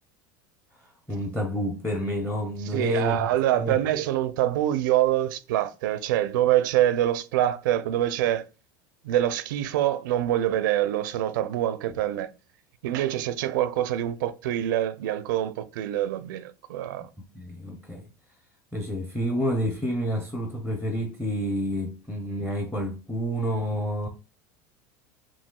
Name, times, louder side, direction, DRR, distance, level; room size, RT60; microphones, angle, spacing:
voice 1, 1.1-3.8 17.3-18.0 18.7-24.1, equal, 5° left, 0.6 m, -29 dB
voice 2, 2.7-8.5 9.0-12.3 12.8-17.1, right 12 dB, 80° right, 0.5 m, -25 dB
5.6 x 2.7 x 2.2 m
supercardioid pair, 130°, 10 cm